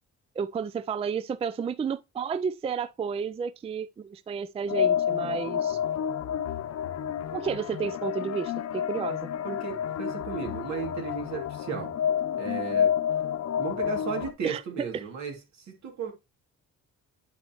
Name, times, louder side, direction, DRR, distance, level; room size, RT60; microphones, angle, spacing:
voice 1, 0.4-5.8 7.3-9.3 14.4-14.6 14.9-15.0, right 6 dB, 20° right, 0.3 m, -32 dB
sound 1, 4.7-14.3, left 9 dB, 60° left, 0.7 m, -29 dB
voice 2, 9.4-11.9 12.4-13.0 13.6-16.1, right 6 dB, 65° right, 2.6 m, -35 dB
9.7 x 4.2 x 3.0 m
cardioid pair, 90°, 30 cm